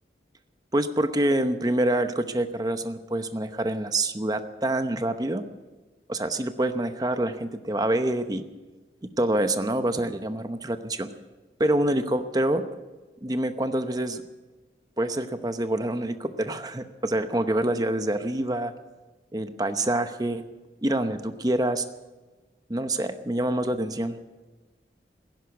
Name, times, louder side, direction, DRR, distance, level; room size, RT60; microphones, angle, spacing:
voice 1, 0.7-5.4 6.1-8.4 9.2-11.1 11.6-12.6 13.2-14.2 15.0-18.7 19.3-20.4 20.8-21.8 22.7-24.2, right 1 dB, 20° right, 9 dB, 0.8 m, -26 dB
16.5 x 11.0 x 8.1 m, 1.2 s
head